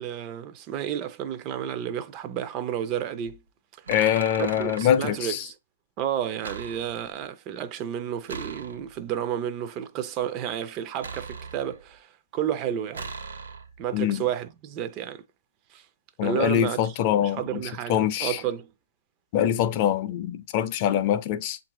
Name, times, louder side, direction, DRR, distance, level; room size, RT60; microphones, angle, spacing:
voice 1, 0.0-3.4 4.4-5.5 6.0-13.1 13.8-15.2 15.7-15.8 16.2-16.9 17.2-18.7, right 10 dB, 30° right, 0.4 m, -31 dB
sound 1, 3.2-3.4 3.9-4.9 6.4-7.2 8.3-9.1 11.0-12.0 12.9-13.9, right 4 dB, 75° right, 0.8 m, -39 dB
voice 2, 3.9-5.4 13.9-14.2 16.2-17.6 17.9-18.4 19.3-21.6, left 10 dB, 35° left, 0.5 m, -24 dB
6.9 x 2.5 x 2.9 m
hypercardioid pair, 140°, 0 cm